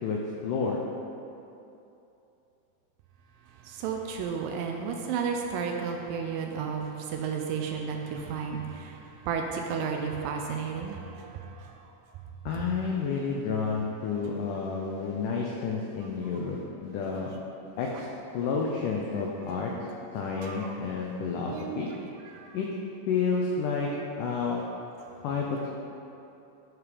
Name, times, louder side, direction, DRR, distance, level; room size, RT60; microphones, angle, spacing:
voice 1, 0.0-0.8 12.5-17.3 17.8-18.1 18.3-19.7 20.1-21.9 22.5-22.7 23.1-23.9 24.2-24.6 25.2-25.7, left 5 dB, 90° left, -1 dB, 1.8 m, -30 dB
voice 2, 3.7-9.0 9.3-11.7 20.4-20.7 21.5-22.0 22.3-22.5 23.8-24.0, right 6 dB, 85° right, 2 dB, 1.9 m, -33 dB
11.0 x 4.8 x 4.9 m, 2.8 s
omnidirectional pair, 4.6 m